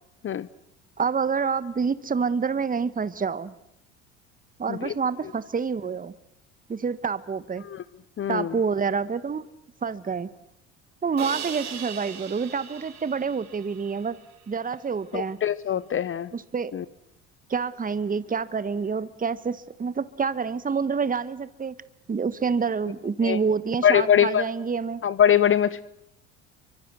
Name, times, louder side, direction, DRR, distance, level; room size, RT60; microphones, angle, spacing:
voice 1, 1.0-3.5 4.6-6.1 6.7-7.6 8.3-9.5 9.8-10.3 11.0-14.2 14.5-15.4 16.3-16.7 17.5-21.7 22.1-25.0, right 5 dB, 20° right, 1.4 m, -27 dB
voice 2, 8.2-8.5 15.1-16.3 16.7-16.8 23.2-23.4 23.8-24.4 25.0-25.8, left 9 dB, 35° left, 0.9 m, -22 dB
Crash cymbal, 11.2-14.2, right 8 dB, 50° right, 5.8 m, -39 dB
29.5 x 24.5 x 6.4 m
hypercardioid pair, 70°, 36 cm